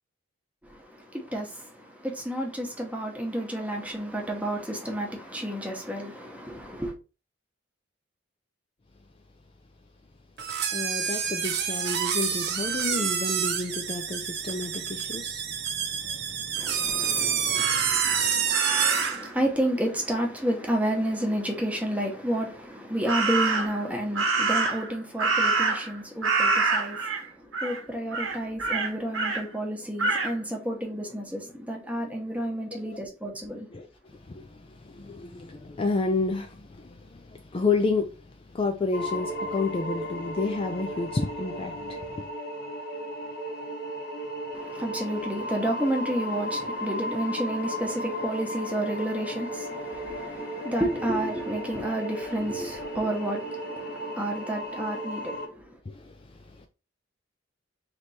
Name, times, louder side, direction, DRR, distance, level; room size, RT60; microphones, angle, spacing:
voice 1, 0.6-6.9 16.6-17.7 18.0-33.7 44.5-55.8, right 1 dB, 5° right, 0.9 m, -31 dB
sound 1, 10.4-19.2, right 8 dB, 60° right, 0.6 m, -28 dB
voice 2, 10.7-18.4 32.9-33.0 33.7-42.3 55.9-56.7, left 3 dB, 30° left, 0.4 m, -31 dB
Crow, 17.6-19.3 23.1-23.8 24.2-26.0 26.2-27.2 27.5-27.8 28.1-29.4 30.0-30.3, right 3 dB, 90° right, 1.2 m, -26 dB
sound 2, 38.9-55.5, equal, 55° left, 0.9 m, -35 dB
3.3 x 2.9 x 4.0 m
head